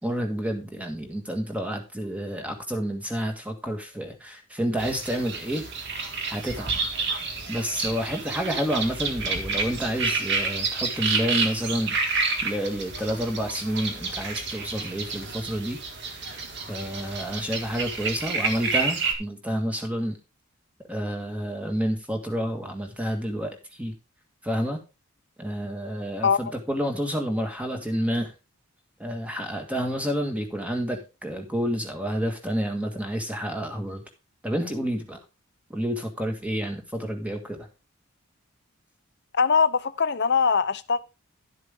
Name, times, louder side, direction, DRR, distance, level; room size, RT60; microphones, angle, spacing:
voice 1, 0.0-5.6 6.3-6.7 7.5-15.8 16.7-20.2 20.9-23.9 24.4-24.8 25.4-28.3 29.0-34.0 34.4-35.2 35.7-37.7, equal, 5° right, 1.7 m, -29 dB
sound 1, 4.8-19.1, right 4 dB, 50° right, 1.9 m, -29 dB
voice 2, 26.2-26.5 39.3-41.0, left 5 dB, 50° left, 0.7 m, -22 dB
11.5 x 7.7 x 3.6 m
head